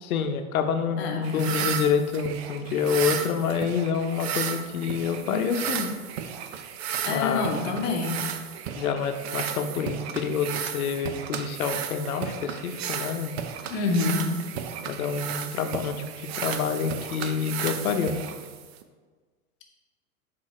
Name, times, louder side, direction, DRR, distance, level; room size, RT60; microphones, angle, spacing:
voice 1, 0.0-5.9 7.1-7.5 8.7-13.3 14.9-18.1, left 6 dB, 85° left, 7 dB, 0.9 m, -27 dB
voice 2, 1.0-1.8 7.0-8.2 13.7-14.4, left 3 dB, 25° left, 1 dB, 1.0 m, -27 dB
sound 1, 1.2-18.8, right 8 dB, 50° right, 0.6 m, -34 dB
6.8 x 4.7 x 4.2 m, 1.5 s
supercardioid pair, 150°, 42 cm